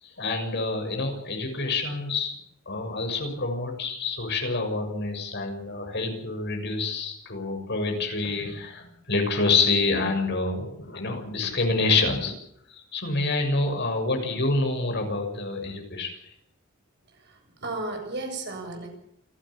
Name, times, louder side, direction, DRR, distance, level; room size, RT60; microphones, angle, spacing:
voice 1, 0.0-2.3 2.6-12.3 12.7-16.3, left 3 dB, 55° left, 4 dB, 6.7 m, -27 dB
voice 2, 17.2-18.9, right 2 dB, 55° right, 3 dB, 7.6 m, -34 dB
28.5 x 13.0 x 8.7 m, 0.72 s
head